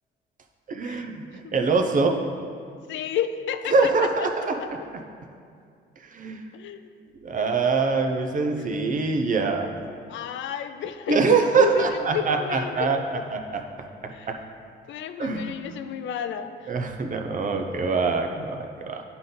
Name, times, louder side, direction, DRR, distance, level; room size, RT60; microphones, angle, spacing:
voice 1, 0.7-2.2 3.7-4.6 4.9-5.0 6.1-6.4 7.2-9.7 11.1-13.6 14.0-14.4 15.2-15.5 16.7-19.0, right 4 dB, 40° right, 4 dB, 0.7 m, -24 dB
voice 2, 2.9-4.3 4.6-4.7 6.5-6.9 7.4-7.5 10.1-13.2 14.1-14.3 14.9-16.7, left 9 dB, 70° left, 10 dB, 0.4 m, -32 dB
10.5 x 3.9 x 3.9 m, 2.3 s
cardioid pair, 90°, 20 cm